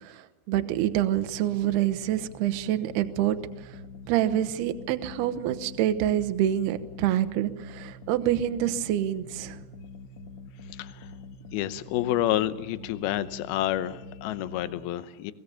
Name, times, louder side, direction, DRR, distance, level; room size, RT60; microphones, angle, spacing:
voice 1, 0.0-3.4 3.6-3.7 4.1-9.6, right 12 dB, 70° right, 9 dB, 2.6 m, -27 dB
sound 1, 1.2-14.8, left 3 dB, 60° left, 1.9 m, -45 dB
voice 2, 10.7-11.1 11.5-15.3, left 13 dB, 80° left, 13 dB, 2.2 m, -29 dB
23.5 x 19.0 x 7.0 m, 1.1 s
omnidirectional pair, 5.5 m